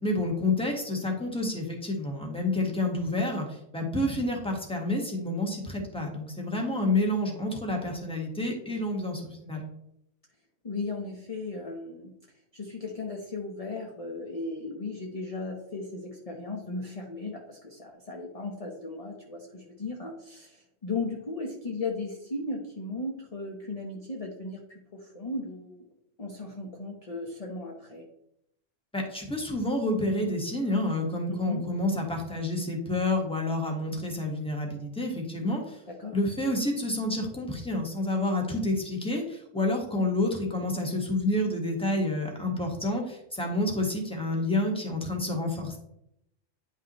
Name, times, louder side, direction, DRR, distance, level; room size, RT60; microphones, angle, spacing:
voice 1, 0.0-9.7 28.9-35.8 36.1-45.8, left 1 dB, 5° left, 1 dB, 1.5 m, -29 dB
voice 2, 10.6-12.1 12.5-25.8 26.2-28.0 31.3-31.6 35.4-35.5 35.9-36.2, left 3 dB, 30° left, 0 dB, 1.0 m, -36 dB
10.0 x 5.6 x 3.1 m, 0.77 s
omnidirectional pair, 1.4 m